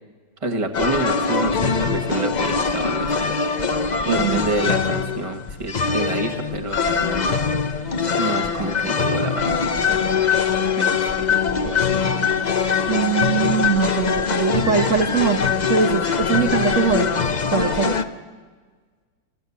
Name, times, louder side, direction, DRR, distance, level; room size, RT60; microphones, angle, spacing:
voice 1, 0.4-3.1 4.0-10.5 10.8-11.3 11.6-12.0, right 2 dB, 20° right, 6 dB, 1.3 m, -29 dB
sound 1, 0.7-18.0, left 5 dB, 65° left, 0.4 m, -22 dB
voice 2, 4.0-4.4 12.9-15.4 15.7-17.2 17.5-18.0, right 6 dB, 45° right, 2 dB, 1.3 m, -21 dB
28.0 x 13.5 x 8.5 m, 1.5 s
omnidirectional pair, 2.0 m